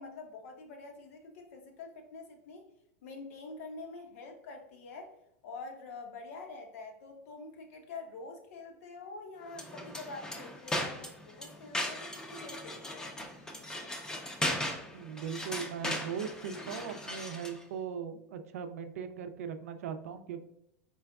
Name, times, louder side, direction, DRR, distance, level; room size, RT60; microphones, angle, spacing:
voice 1, 0.0-2.7 3.0-5.1 5.4-13.1, left 3 dB, 70° left, 4 dB, 0.9 m, -46 dB
sound 1, 9.5-17.6, left 1 dB, 10° left, 0.5 m, -38 dB
voice 2, 14.9-20.4, right 7 dB, 90° right, 8 dB, 0.5 m, -39 dB
4.4 x 3.4 x 2.3 m, 0.80 s
supercardioid pair, 150°, 8 cm